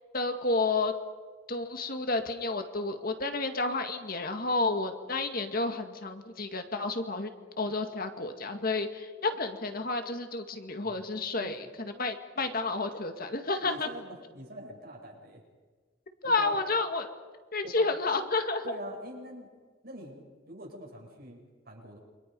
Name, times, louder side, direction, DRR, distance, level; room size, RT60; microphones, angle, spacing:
voice 1, 0.1-0.9 1.5-7.3 7.6-13.9 16.2-17.1 17.5-18.8, left 3 dB, 50° left, 6 dB, 2.0 m, -30 dB
voice 2, 11.4-11.7 13.6-15.4 16.2-16.6 17.6-18.0 18.6-19.5 19.8-22.0, right 1 dB, 55° right, 0 dB, 7.3 m, -44 dB
29.0 x 25.5 x 5.4 m, 1.4 s
head